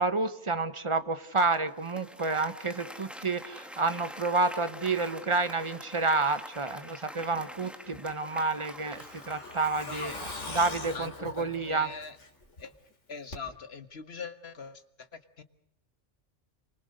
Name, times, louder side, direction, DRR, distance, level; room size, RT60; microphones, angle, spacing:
voice 1, 0.0-11.9, right 3 dB, 25° right, 11 dB, 1.2 m, -29 dB
Applause, 1.4-10.3, equal, ahead, 1.6 m, -46 dB
Truck, 7.9-12.6 12.9-13.0 13.3-13.4, left 2 dB, 85° left, 3.4 m, -42 dB
voice 2, 11.4-12.2 12.6-12.7 13.1-15.1 15.4-15.5, left 5 dB, 60° left, 10 dB, 1.8 m, -41 dB
28.5 x 24.5 x 6.7 m, 0.70 s
omnidirectional pair, 1.2 m